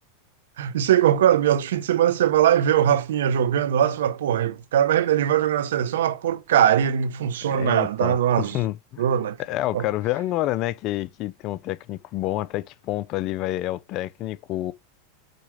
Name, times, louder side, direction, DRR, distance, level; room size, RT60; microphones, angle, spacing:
voice 1, 0.6-8.6 9.0-9.4 9.7-9.9, right 10 dB, 80° right, 0.8 m, -21 dB
voice 2, 7.5-9.0 9.4-14.7, left 15 dB, 45° left, 0.5 m, -28 dB
5.3 x 4.3 x 4.9 m
hypercardioid pair, 120°, 0 cm